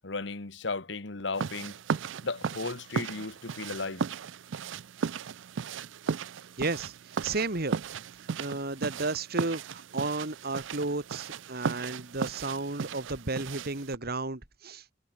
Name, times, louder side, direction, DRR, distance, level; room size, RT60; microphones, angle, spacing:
voice 1, 0.0-1.8 2.2-4.1, left 3 dB, 70° left, 1.6 m, -35 dB
sound 1, 1.3-14.0, right 6 dB, 75° right, 0.5 m, -36 dB
voice 2, 6.6-7.8 8.2-14.8, right 3 dB, 55° right, 2.2 m, -33 dB
head